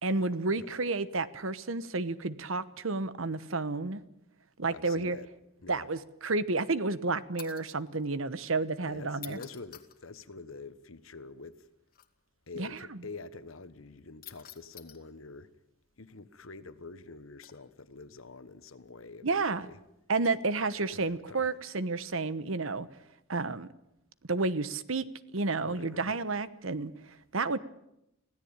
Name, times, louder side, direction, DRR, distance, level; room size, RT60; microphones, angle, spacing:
voice 1, 0.0-4.0 4.6-5.2 5.7-9.4 12.6-12.7 19.2-19.7 20.1-22.9 23.3-23.7 24.3-25.1 25.3-27.6, right 3 dB, 75° right, 1.1 m, -31 dB
voice 2, 4.7-5.3 5.6-5.9 8.9-11.7 12.5-15.5 16.0-19.8 20.7-21.5 25.6-26.2, left 3 dB, 80° left, 1.3 m, -47 dB
sound 1, 7.4-7.8 9.1-10.0 11.9-12.1 14.2-15.0 17.4-17.8 20.2-20.5 21.4-21.6, left 12 dB, 45° left, 1.9 m, -49 dB
25.0 x 16.5 x 8.9 m
head